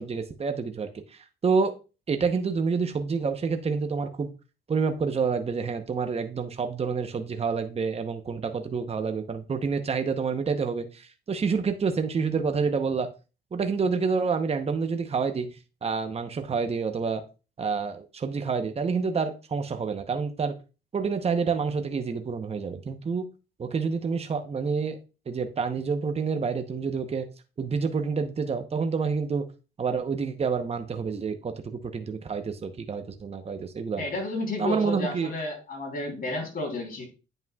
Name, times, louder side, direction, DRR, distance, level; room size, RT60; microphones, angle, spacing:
voice 1, 0.0-1.7 2.1-4.3 4.7-13.1 13.5-17.2 17.6-20.5 20.9-23.3 23.6-25.0 25.3-27.3 27.6-29.5 29.8-34.0 34.6-35.3, right 5 dB, 30° right, 7 dB, 0.8 m, -28 dB
voice 2, 34.0-37.1, left 2 dB, 45° left, 1 dB, 3.4 m, -32 dB
9.4 x 5.4 x 2.3 m, 0.32 s
cardioid pair, 90°, 20 cm